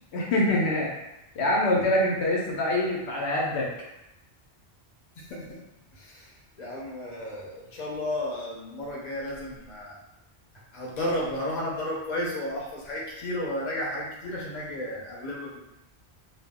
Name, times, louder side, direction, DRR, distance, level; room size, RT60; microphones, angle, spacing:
voice 1, 0.1-0.9 1.4-3.7, left 1 dB, 80° left, -3 dB, 0.9 m, -24 dB
voice 2, 5.2-5.6 5.9-10.0 10.7-15.6, left 1 dB, 45° left, -4 dB, 0.7 m, -33 dB
2.3 x 2.0 x 3.5 m, 0.91 s
omnidirectional pair, 1.1 m